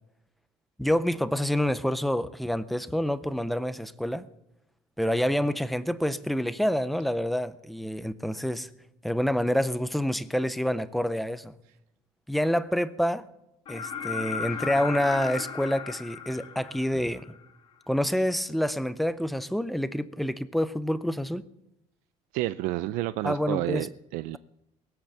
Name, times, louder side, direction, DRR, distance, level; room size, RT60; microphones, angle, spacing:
voice 1, 0.8-4.3 5.0-8.7 9.0-11.5 12.3-13.2 13.7-17.3 17.9-21.5 23.2-23.9, equal, ahead, 13 dB, 0.5 m, -27 dB
sound 1, 13.7-17.4 19.3-19.4, left 7 dB, 40° left, 2.0 m, -35 dB
voice 2, 22.3-24.4, right 16 dB, 80° right, 14 dB, 0.5 m, -30 dB
21.5 x 8.0 x 7.1 m, 0.85 s
cardioid pair, 170°, 13 cm